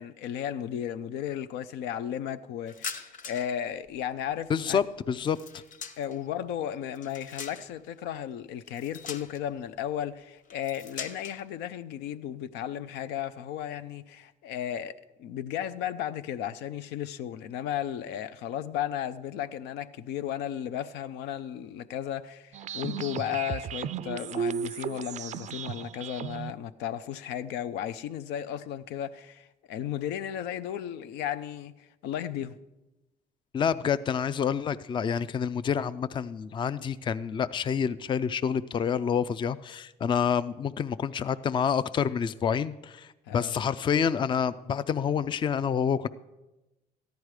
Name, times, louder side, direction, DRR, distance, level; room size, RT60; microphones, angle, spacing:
voice 1, 0.0-4.8 6.0-32.6 43.3-43.6, left 10 dB, 90° left, 0.5 m, -34 dB
sound 1, 2.7-3.6 3.9-6.3 6.7-7.9 8.7-9.6 10.5-11.4, left 5 dB, 50° left, 0.9 m, -42 dB
voice 2, 4.5-5.4 33.5-46.1, left 7 dB, 30° left, 0.4 m, -28 dB
sound 2, 22.5-26.5, right 8 dB, 45° right, 0.4 m, -35 dB
14.0 x 10.5 x 4.8 m
cardioid pair, 110°, 17 cm